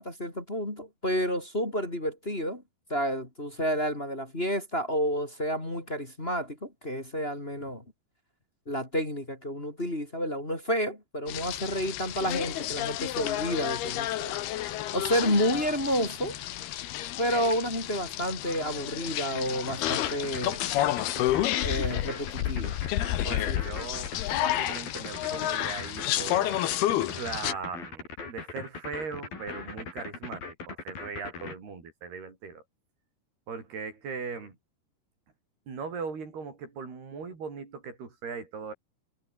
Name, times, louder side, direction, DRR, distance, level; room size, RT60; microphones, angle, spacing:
voice 1, 0.0-2.6 2.9-7.8 8.7-14.4 14.9-16.4 17.2-20.6 21.6-22.8 23.2-23.6, equal, 15° left, 3.5 m, -30 dB
sound 1, 11.3-27.5, left 14 dB, 85° left, 3.3 m, -30 dB
sound 2, 19.7-31.5, left 4 dB, 65° left, 8.3 m, -40 dB
voice 2, 23.2-26.7 27.2-32.6 33.5-34.6 35.7-38.7, right 5 dB, 85° right, 7.9 m, -39 dB
omnidirectional pair, 4.5 m